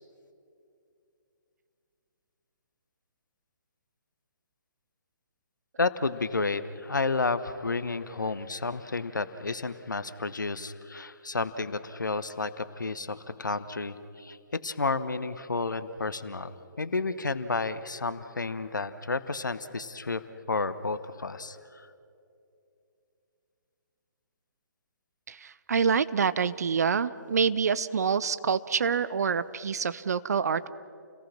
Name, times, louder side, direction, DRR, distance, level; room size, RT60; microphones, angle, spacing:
voice 1, 5.8-21.9, left 3 dB, 75° left, 13 dB, 1.1 m, -31 dB
voice 2, 25.3-30.7, right 6 dB, 55° right, 15 dB, 0.8 m, -26 dB
29.5 x 18.5 x 6.0 m, 2.6 s
figure-of-eight pair, 135°, 10 cm